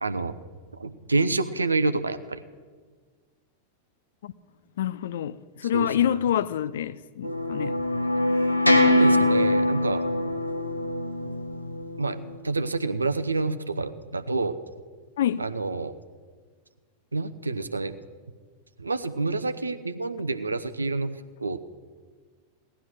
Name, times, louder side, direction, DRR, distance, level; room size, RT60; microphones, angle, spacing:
voice 1, 0.0-0.4 0.8-2.4 5.7-6.0 8.8-10.0 12.0-12.2 12.4-14.6 15.4-16.0 17.1-17.9 18.8-21.1 21.4-21.6, right 3 dB, 80° right, 0.8 m, -28 dB
voice 2, 4.8-7.8 15.2-15.5, left 10 dB, 60° left, 0.5 m, -27 dB
sound 1, 7.2-12.3, left 1 dB, 90° left, 1.1 m, -23 dB
17.5 x 11.5 x 6.3 m
figure-of-eight pair, 90°, 0 cm